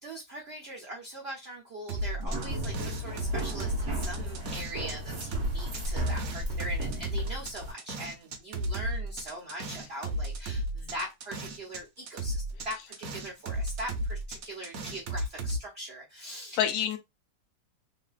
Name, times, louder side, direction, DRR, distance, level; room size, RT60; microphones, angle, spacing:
voice 1, 0.0-16.7, right 1 dB, 90° right, 0.5 m, -41 dB
sound 1, 1.9-4.9 5.2-11.8 12.1-15.6, right 1 dB, 65° right, 0.9 m, -34 dB
voice 2, 2.2-2.7 16.6-17.0, left 9 dB, 65° left, 1.0 m, -30 dB
sound 2, 2.3-7.7, equal, 45° right, 1.2 m, -34 dB
3.2 x 2.5 x 2.3 m
omnidirectional pair, 2.1 m